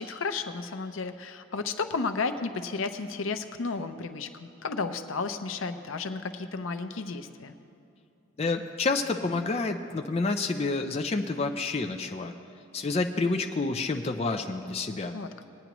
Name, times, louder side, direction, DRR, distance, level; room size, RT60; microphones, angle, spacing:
voice 1, 0.0-7.5 15.1-15.4, left 4 dB, 80° left, 9 dB, 0.6 m, -33 dB
voice 2, 8.4-12.3 12.7-15.1, left 3 dB, 30° left, 4 dB, 0.4 m, -29 dB
20.5 x 9.3 x 3.0 m, 2.6 s
head